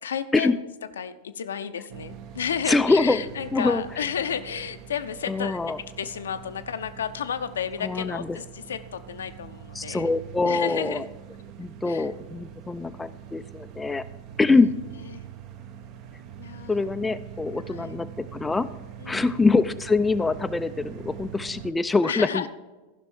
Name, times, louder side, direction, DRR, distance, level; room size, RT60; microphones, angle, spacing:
voice 1, 0.0-0.6 1.0-5.6 6.0-10.1 10.4-11.0 11.9-12.1 14.5-14.6 15.1-15.2 16.4-16.8 17.7-18.0 19.0-19.4 22.0-22.5, left 8 dB, 65° left, 10 dB, 0.6 m, -32 dB
sound 1, 1.9-21.7, right 9 dB, 40° right, 0.7 m, -43 dB
voice 2, 2.7-3.2 3.5-3.8 5.3-5.8 7.8-8.4 9.8-11.1 11.6-14.0 14.4-14.7 16.7-18.7 19.1-22.4, left 3 dB, 10° left, 10 dB, 0.4 m, -24 dB
14.5 x 6.0 x 4.5 m, 1.2 s
figure-of-eight pair, 90°, 0 cm